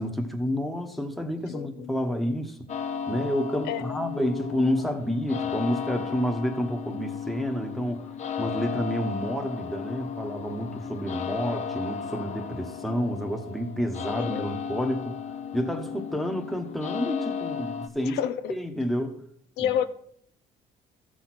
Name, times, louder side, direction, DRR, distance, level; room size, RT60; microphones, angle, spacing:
voice 1, 0.0-2.7 3.1-8.1 8.4-15.2 15.5-18.2 18.5-19.2 19.6-19.7, equal, ahead, 1.1 m, -29 dB
voice 2, 1.5-2.1 3.7-3.8 14.2-14.4 18.1-18.5 19.6-19.9, left 9 dB, 85° left, 0.6 m, -29 dB
sound 1, 2.7-17.9, left 7 dB, 45° left, 0.7 m, -35 dB
13.5 x 6.2 x 4.3 m
cardioid pair, 110°, 17 cm